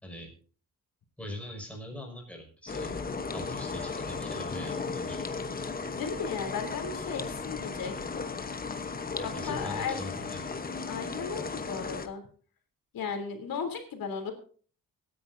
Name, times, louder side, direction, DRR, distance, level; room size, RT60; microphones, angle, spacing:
voice 1, 1.2-2.9 3.3-5.2 9.2-10.4, equal, 5° left, 0 dB, 5.5 m, -42 dB
sound 1, 2.7-12.1, left 4 dB, 25° left, 1.0 m, -35 dB
voice 2, 5.9-8.1 9.2-10.1 10.9-12.2 12.9-14.3, left 5 dB, 80° left, 4 dB, 3.3 m, -35 dB
24.5 x 10.0 x 2.7 m, 0.42 s
wide cardioid pair, 150°, 34 cm